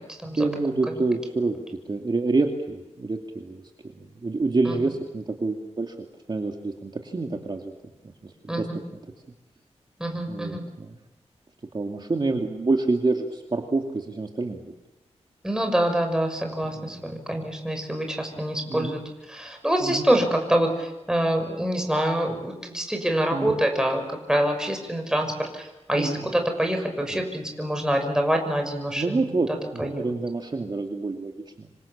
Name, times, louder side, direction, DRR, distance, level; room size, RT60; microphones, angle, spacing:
voice 1, 0.4-1.6 1.9-5.9 6.3-7.7 8.2-8.8 10.3-11.0 11.7-14.7 16.8-17.1 18.7-19.0 19.8-20.1 23.3-23.6 25.9-26.2 29.0-31.3 31.6-31.7, right 3 dB, 40° right, 3 dB, 2.6 m, -27 dB
voice 2, 10.0-10.6 15.4-19.0 19.3-25.6 25.9-29.2 29.8-30.0, right 1 dB, 5° right, 4 dB, 6.4 m, -25 dB
27.5 x 25.5 x 7.4 m, 1.0 s
wide cardioid pair, 105°, 12 cm